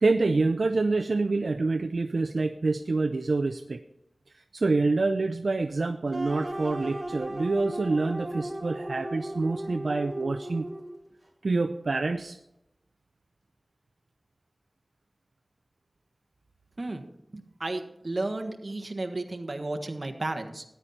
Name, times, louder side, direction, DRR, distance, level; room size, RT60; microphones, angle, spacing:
voice 1, 0.0-3.8 4.5-10.7 11.4-12.4, right 3 dB, 85° right, 7 dB, 0.5 m, -26 dB
sound 1, 6.1-11.1, right 1 dB, 40° right, 4.1 m, -36 dB
voice 2, 17.3-20.6, right 2 dB, 55° right, 6 dB, 1.5 m, -33 dB
13.5 x 10.5 x 4.2 m, 0.83 s
wide cardioid pair, 45°, 0 cm